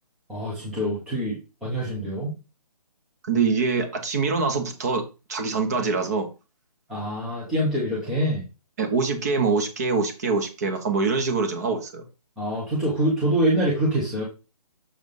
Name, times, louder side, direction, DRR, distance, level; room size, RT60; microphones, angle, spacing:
voice 1, 0.3-2.3 6.9-8.4 12.4-14.2, right 1 dB, ahead, -8 dB, 0.7 m, -25 dB
voice 2, 3.2-5.0 5.3-6.3 8.8-12.0, right 4 dB, 25° right, 6 dB, 1.1 m, -24 dB
6.6 x 3.4 x 5.4 m, 0.30 s
hypercardioid pair, 170°, 20 cm